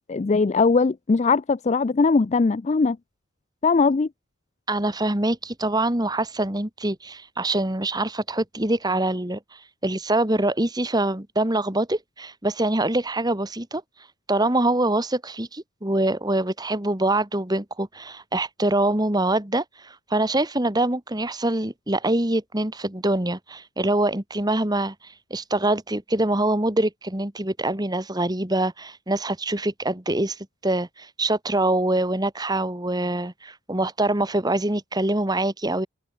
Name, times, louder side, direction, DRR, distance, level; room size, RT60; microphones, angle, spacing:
voice 1, 0.1-3.0 3.6-4.1, left 4 dB, 30° left, 0.3 m, -20 dB
voice 2, 4.7-9.4 9.8-13.8 14.3-35.9, right 1 dB, 20° right, 1.6 m, -24 dB
head